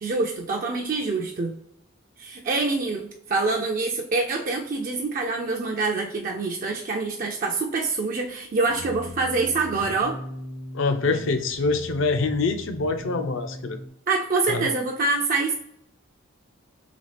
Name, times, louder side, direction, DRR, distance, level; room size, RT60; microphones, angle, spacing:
voice 1, 0.0-1.6 2.2-10.2 14.1-15.6, right 3 dB, 40° right, 1 dB, 0.4 m, -25 dB
sound 1, 8.7-13.9, equal, 75° right, 0.7 m, -39 dB
voice 2, 10.7-13.8 14.5-14.7, left 3 dB, 60° left, 7 dB, 0.5 m, -25 dB
4.0 x 3.2 x 3.2 m, 0.74 s
head